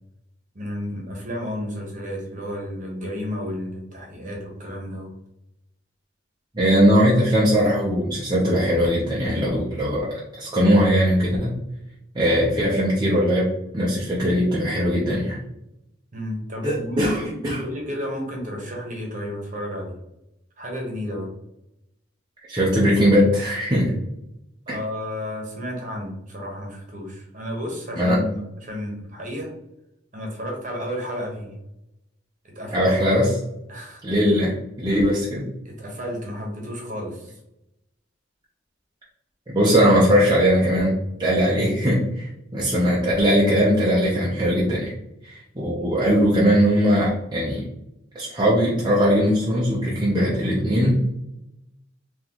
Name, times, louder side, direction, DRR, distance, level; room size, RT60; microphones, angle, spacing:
voice 1, 0.5-5.1 16.1-17.0 17.5-19.9 20.6-21.3 24.7-29.5 30.1-31.5 32.4-33.0 33.7-34.0 35.6-37.4 45.8-45.9, equal, 40° right, 0 dB, 1.1 m, -32 dB
voice 2, 6.5-10.1 10.4-11.5 12.1-13.5 13.7-15.4 16.6-17.6 22.5-23.9 24.7-24.8 28.0-28.2 32.7-33.3 34.0-35.4 39.5-40.9 41.2-44.9 45.2-47.6 48.1-51.2, equal, 20° right, -6 dB, 0.7 m, -20 dB
3.9 x 3.1 x 3.0 m, 0.85 s
head